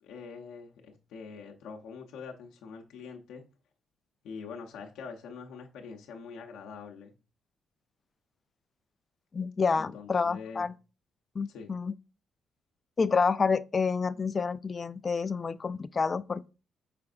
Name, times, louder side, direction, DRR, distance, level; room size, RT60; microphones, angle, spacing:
voice 1, 0.0-3.4 4.2-7.1 9.7-10.7 11.5-11.7, left 5 dB, 85° left, 0.8 m, -44 dB
voice 2, 9.3-10.7 11.4-11.9 13.0-16.5, left 5 dB, 35° left, 0.3 m, -28 dB
5.8 x 3.4 x 2.4 m
cardioid pair, 90°, 0 cm